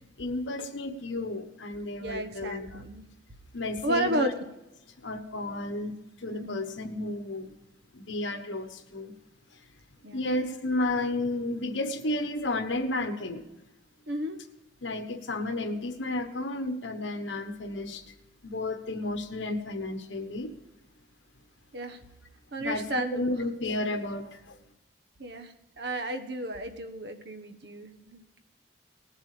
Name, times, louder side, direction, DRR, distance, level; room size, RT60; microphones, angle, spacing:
voice 1, 0.2-2.9 3.5-4.3 5.0-7.5 7.9-9.1 10.1-13.4 14.8-18.0 18.4-20.5 22.6-24.6, left 2 dB, 85° left, 8 dB, 1.2 m, -32 dB
voice 2, 2.0-3.1 3.8-4.3 6.3-6.6 10.0-10.2 14.1-14.4 21.7-22.0 22.5-23.4 25.2-28.4, right 1 dB, 60° right, 7 dB, 1.2 m, -33 dB
19.0 x 7.4 x 5.0 m, 0.96 s
head